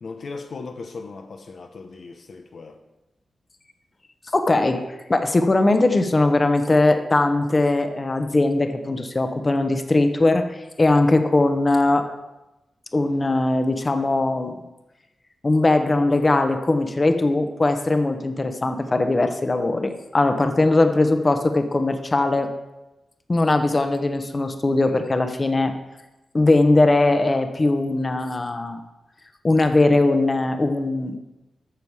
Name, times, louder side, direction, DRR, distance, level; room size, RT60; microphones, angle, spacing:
voice 1, 0.0-2.8, left 4 dB, 65° left, 0.8 m, -37 dB
voice 2, 4.3-4.8 5.1-12.1 12.9-14.6 15.4-22.5 23.3-25.7 26.3-28.8 29.4-31.2, left 2 dB, 30° left, 1.0 m, -20 dB
13.0 x 6.7 x 4.7 m
wide cardioid pair, 90°, 0 cm